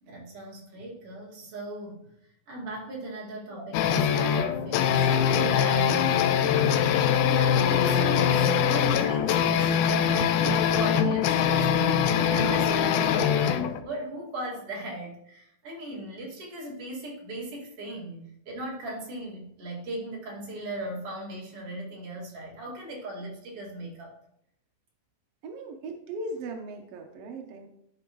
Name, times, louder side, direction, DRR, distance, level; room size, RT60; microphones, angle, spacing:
voice 1, 0.0-2.1 2.5-24.1, right 1 dB, 45° right, -4 dB, 3.1 m, -37 dB
sound 1, 3.7-13.8, left 8 dB, 80° left, 1.9 m, -23 dB
voice 2, 25.4-27.7, right 2 dB, 75° right, 3 dB, 1.4 m, -38 dB
12.5 x 5.1 x 3.1 m, 0.75 s
omnidirectional pair, 3.9 m